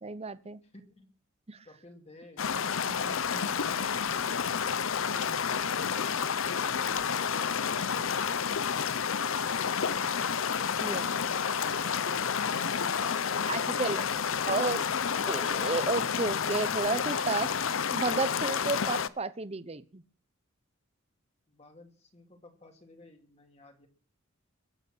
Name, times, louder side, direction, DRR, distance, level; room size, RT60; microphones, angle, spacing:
voice 1, 0.0-0.6 1.5-1.6 2.9-3.4 3.9-4.0 10.8-11.1 13.5-14.0 14.5-14.8 15.3-17.5 17.9-20.0, right 3 dB, 30° right, 14 dB, 0.8 m, -32 dB
voice 2, 0.6-1.2 1.6-2.5 16.8-16.9 21.5-23.9, left 2 dB, 30° left, 4 dB, 2.5 m, -55 dB
sound 1, 2.4-19.1, left 7 dB, 70° left, 0.7 m, -30 dB
sound 2, 9.4-14.0 14.7-16.0, right 2 dB, 5° right, 1.4 m, -55 dB
22.0 x 8.2 x 6.2 m, 0.40 s
head